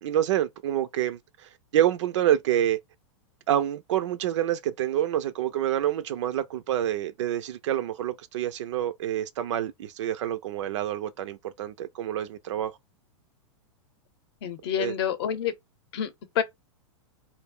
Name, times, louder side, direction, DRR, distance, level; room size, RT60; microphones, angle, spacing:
voice 1, 0.0-1.2 1.7-2.8 3.5-12.7 14.8-14.9, right 11 dB, 65° right, 0.4 m, -27 dB
voice 2, 14.4-15.5 15.9-16.4, left 9 dB, 50° left, 0.7 m, -28 dB
2.5 x 2.0 x 3.5 m
supercardioid pair, 165°, 17 cm